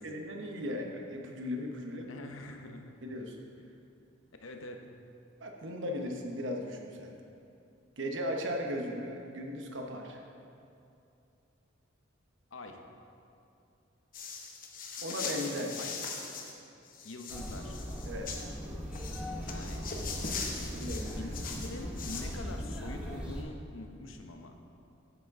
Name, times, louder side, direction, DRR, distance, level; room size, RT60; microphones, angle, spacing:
voice 1, 0.0-2.1 3.0-3.4 5.4-7.1 8.0-10.2 15.0-15.9 18.0-18.4 20.8-21.3, left 1 dB, 70° right, 2 dB, 0.9 m, -37 dB
voice 2, 2.1-2.9 4.4-4.9 12.5-12.8 15.8-16.0 17.0-17.8 19.4-19.9 21.1-24.6, left 2 dB, 85° left, 4 dB, 0.8 m, -44 dB
sound 1, 14.1-16.5 16.8-18.5 18.9-22.4, left 4 dB, 45° left, 0.8 m, -40 dB
sound 2, 17.3-23.4, equal, 5° right, 0.8 m, -39 dB
8.0 x 8.0 x 3.6 m, 2.7 s
head